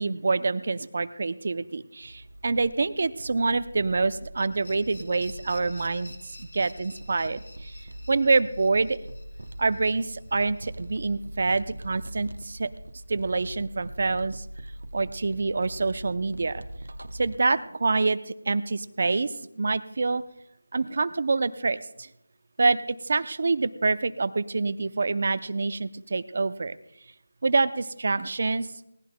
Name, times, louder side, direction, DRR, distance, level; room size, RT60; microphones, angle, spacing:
voice 1, 0.0-6.1 6.5-7.7 8.1-9.0 9.6-12.7 13.1-14.4 14.9-16.6 17.1-20.2 20.7-22.1 22.6-26.8 27.4-28.7, right 3 dB, 50° right, 15 dB, 0.5 m, -26 dB
sound 1, 2.0-17.4, right 1 dB, 90° right, 0.6 m, -42 dB
sound 2, 4.4-11.2, left 2 dB, 60° left, 2.5 m, -51 dB
20.5 x 17.5 x 2.2 m, 0.82 s
figure-of-eight pair, 170°, 0 cm